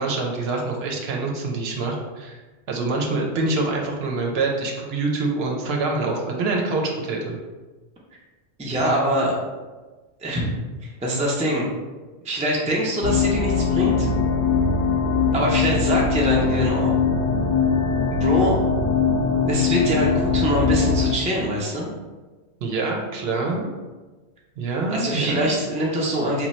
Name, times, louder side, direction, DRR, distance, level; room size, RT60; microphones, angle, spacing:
voice 1, 0.0-2.4 2.7-7.4 22.6-23.7 24.6-25.5, right 3 dB, 70° right, 0 dB, 0.8 m, -25 dB
voice 2, 8.6-9.4 10.2-10.5 10.8-11.7 12.2-14.1 15.3-16.9 18.1-18.6 19.5-21.9 24.9-26.5, equal, 10° right, -3 dB, 0.3 m, -24 dB
sound 1, 13.0-21.1, left 5 dB, 60° left, 0.7 m, -21 dB
3.0 x 2.2 x 4.1 m, 1.3 s
omnidirectional pair, 1.1 m